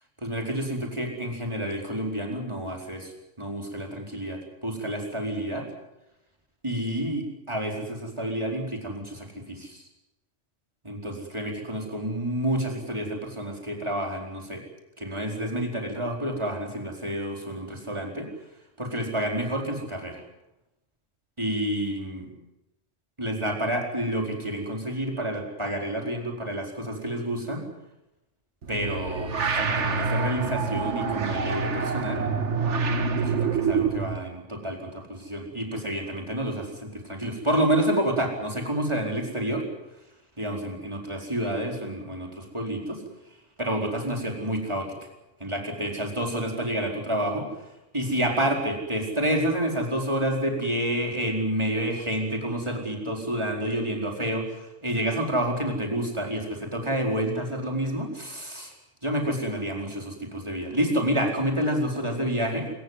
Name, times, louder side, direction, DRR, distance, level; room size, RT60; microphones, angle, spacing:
voice 1, 0.2-3.1 3.4-5.7 6.6-9.8 10.8-14.6 15.0-18.3 18.8-20.2 21.4-22.3 23.2-27.7 28.7-32.3 33.2-39.7 40.4-43.0 43.6-45.1 45.4-58.7 59.0-62.7, right 1 dB, 20° right, 1 dB, 4.6 m, -29 dB
sound 1, 28.6-34.2, right 5 dB, 65° right, 1.8 m, -26 dB
27.0 x 14.5 x 9.6 m, 0.92 s
omnidirectional pair, 1.3 m